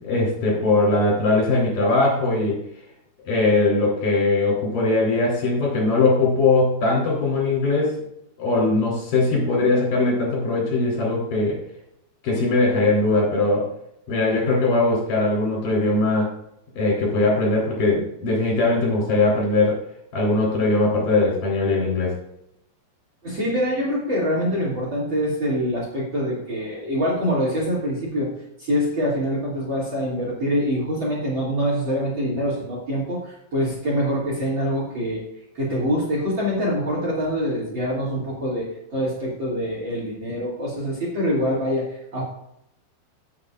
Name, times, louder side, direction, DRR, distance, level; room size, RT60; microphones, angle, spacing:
voice 1, 0.0-2.6 3.3-8.0 8.4-11.6 12.2-13.7 14.1-16.3 16.8-19.8 20.1-22.1, left 2 dB, 55° left, -3 dB, 5.2 m, -20 dB
voice 2, 23.2-28.3 28.6-35.2 35.5-42.2, equal, 35° right, -4 dB, 3.0 m, -25 dB
16.5 x 7.2 x 2.5 m, 0.79 s
omnidirectional pair, 4.5 m